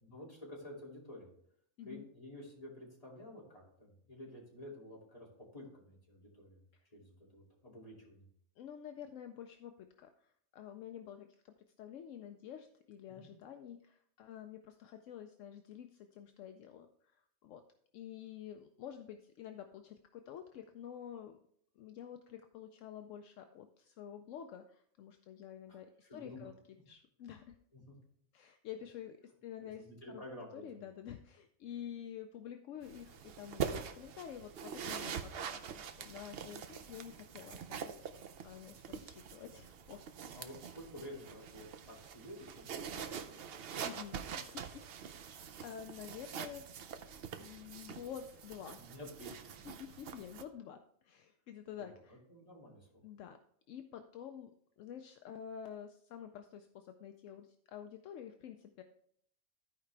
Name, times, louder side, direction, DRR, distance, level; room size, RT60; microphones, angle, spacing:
voice 1, 0.0-1.3 1.8-6.6 6.9-8.2 13.1-13.3 25.7-25.8 26.0-26.5 27.7-27.9 29.6-30.8 40.2-43.5 48.8-49.7 51.7-53.0, left 1 dB, 30° left, -4 dB, 2.7 m, -51 dB
voice 2, 8.6-17.6 17.9-21.4 21.8-27.6 28.3-29.9 30.5-40.5 43.8-44.9 45.2-46.7 47.4-48.8 49.6-52.2 53.0-53.4 53.7-54.5 54.8-58.8, left 9 dB, 75° left, 6 dB, 0.9 m, -49 dB
sound 1, 32.8-50.4, right 7 dB, 60° right, 0.7 m, -45 dB
14.0 x 4.8 x 3.3 m, 0.68 s
omnidirectional pair, 1.3 m